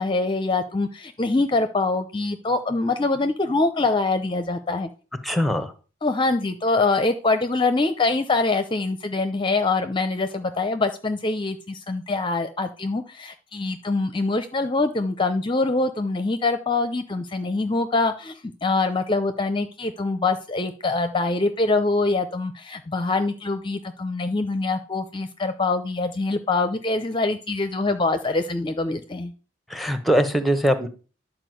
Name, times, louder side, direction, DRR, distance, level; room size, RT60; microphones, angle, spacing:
voice 1, 0.0-4.9 6.0-18.3 18.6-29.3, left 3 dB, 25° left, 9 dB, 0.7 m, -24 dB
voice 2, 5.2-5.7 29.7-30.9, equal, ahead, 10 dB, 1.0 m, -21 dB
11.0 x 4.9 x 7.8 m, 0.36 s
head